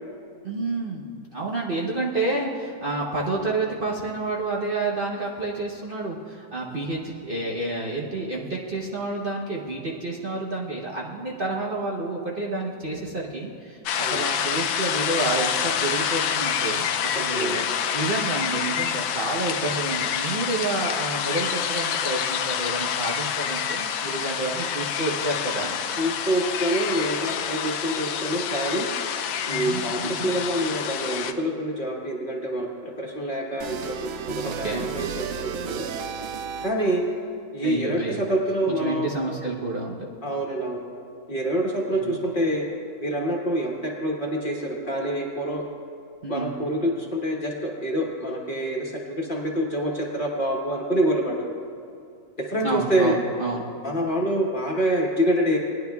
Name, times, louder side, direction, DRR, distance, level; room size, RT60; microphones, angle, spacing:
voice 1, 0.4-17.6 17.9-25.8 29.5-30.3 34.4-34.9 37.6-38.2 38.7-40.1 41.9-42.2 46.2-46.5 52.6-53.6, right 2 dB, 40° right, -3 dB, 0.9 m, -29 dB
sound 1, 13.9-31.3, left 8 dB, 85° left, 1.1 m, -27 dB
voice 2, 17.3-17.6 26.0-28.9 29.5-35.8 36.6-37.0 37.5-39.1 40.2-40.8 41.3-42.6 43.0-45.7 46.3-51.3 52.4-53.2 53.8-55.6, right 1 dB, 35° left, -2 dB, 1.3 m, -26 dB
sound 2, 33.6-37.0, right 7 dB, 70° right, 0.9 m, -33 dB
19.0 x 10.5 x 2.3 m, 2.5 s
omnidirectional pair, 1.6 m